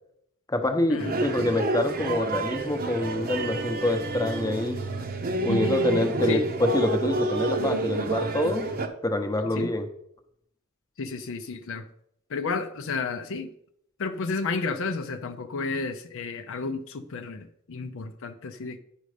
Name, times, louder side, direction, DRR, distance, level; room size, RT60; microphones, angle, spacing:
voice 1, 0.5-4.8 5.4-8.7 9.0-9.9, left 1 dB, 15° left, 5 dB, 0.9 m, -26 dB
sound 1, 1.0-8.9, right 2 dB, 40° right, 0.8 m, -29 dB
voice 2, 5.4-6.4 9.5-9.7 11.0-11.8 12.3-13.5 14.0-18.8, left 4 dB, 60° left, 8 dB, 0.6 m, -32 dB
10.0 x 5.3 x 5.0 m, 0.72 s
head